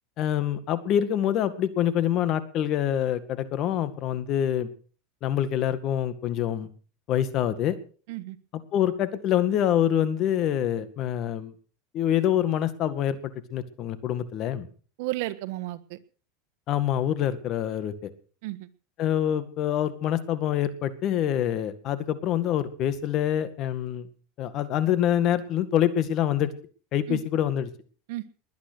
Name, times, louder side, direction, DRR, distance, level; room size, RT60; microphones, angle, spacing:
voice 1, 0.2-4.7 5.2-6.7 7.1-7.8 8.7-11.5 11.9-14.7 16.7-18.1 19.0-24.1 24.4-26.5 26.9-27.7, left 10 dB, 45° left, 13 dB, 2.0 m, -26 dB
voice 2, 15.0-16.0 18.4-18.7 27.1-27.2 28.1-28.3, right 18 dB, 70° right, 14 dB, 1.5 m, -33 dB
21.0 x 9.7 x 6.4 m, 0.42 s
supercardioid pair, 135°, 0 cm